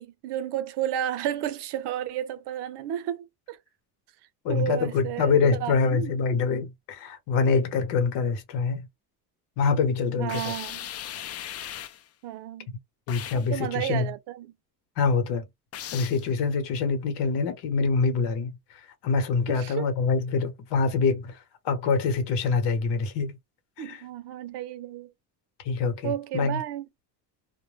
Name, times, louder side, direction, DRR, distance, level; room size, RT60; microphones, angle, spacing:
voice 1, 0.0-3.6 4.5-6.1 10.2-10.9 12.2-12.7 13.3-14.5 19.5-19.9 23.8-25.1 26.0-26.9, right 11 dB, 80° right, 0.6 m, -32 dB
voice 2, 4.4-8.8 9.6-10.5 13.1-14.1 15.0-15.4 15.9-18.6 19.0-21.4 21.6-23.4 23.8-24.0 25.6-26.6, left 4 dB, 90° left, 1.0 m, -25 dB
sound 1, 10.3-12.1 13.1-13.5 15.7-16.3, left 11 dB, 40° left, 0.4 m, -38 dB
2.2 x 2.1 x 3.1 m
cardioid pair, 115°, 40 cm